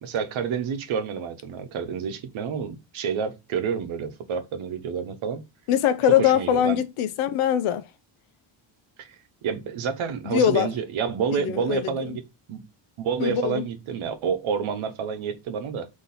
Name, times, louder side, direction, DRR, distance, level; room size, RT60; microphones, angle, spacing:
voice 1, 0.0-5.4 6.2-6.8 9.0-9.1 9.4-12.2 12.5-12.6 13.0-15.9, right 6 dB, 70° right, 0.9 m, -29 dB
voice 2, 5.7-7.8 10.2-10.7 11.3-11.9 13.2-13.6, left 9 dB, 75° left, 0.7 m, -22 dB
4.1 x 3.0 x 4.1 m
cardioid pair, 120°, 50 cm